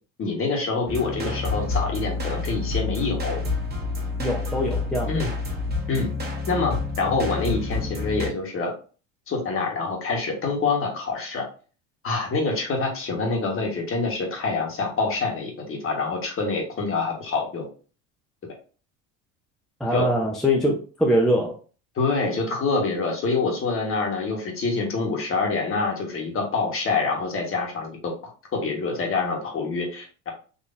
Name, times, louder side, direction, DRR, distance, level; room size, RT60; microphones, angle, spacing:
voice 1, 0.2-3.4 5.1-5.3 5.9-6.1 6.5-8.7 9.3-11.5 12.0-17.7 18.4-18.5 19.9-20.1 21.9-28.1 28.5-30.3, left 3 dB, 35° left, 1 dB, 1.4 m, -26 dB
sound 1, 0.9-8.3, left 3 dB, 25° right, 1.4 m, -28 dB
voice 2, 4.2-5.1 19.8-21.6, equal, ahead, -2 dB, 0.6 m, -23 dB
4.0 x 2.8 x 2.6 m, 0.37 s
supercardioid pair, 105°, 36 cm